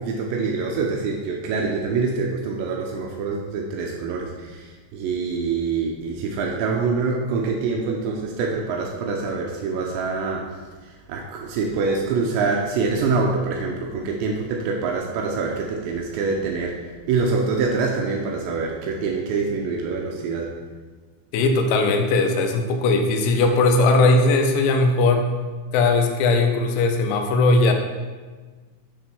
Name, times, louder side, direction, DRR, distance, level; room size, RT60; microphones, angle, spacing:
voice 1, 0.0-10.5 10.8-16.8 17.1-20.5, right 4 dB, 90° right, 0 dB, 2.5 m, -25 dB
voice 2, 21.3-25.3 25.7-27.7, left 3 dB, 90° left, 4 dB, 3.6 m, -19 dB
9.9 x 3.7 x 6.0 m, 1.4 s
omnidirectional pair, 5.9 m